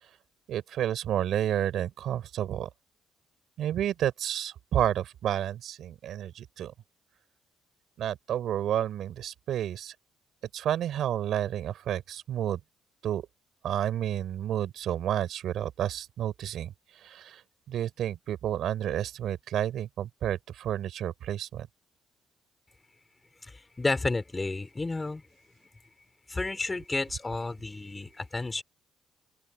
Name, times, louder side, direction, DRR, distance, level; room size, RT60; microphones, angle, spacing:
voice 1, 0.5-2.7 3.6-6.7 8.0-9.9 10.5-12.6 13.0-13.2 13.6-17.4 17.7-21.7, right 11 dB, 75° right, 3.8 m, -30 dB
voice 2, 23.4-25.2 26.3-28.6, left 3 dB, 20° left, 4.6 m, -31 dB
open air
cardioid pair, 90°, 0 cm